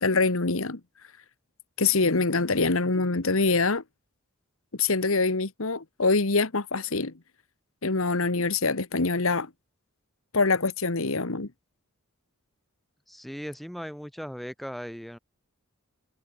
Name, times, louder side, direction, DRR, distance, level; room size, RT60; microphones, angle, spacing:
voice 1, 0.0-0.8 1.8-3.8 4.8-7.1 7.8-9.5 10.3-11.5, left 3 dB, 65° left, 1.5 m, -24 dB
voice 2, 13.1-15.2, equal, ahead, 3.5 m, -38 dB
head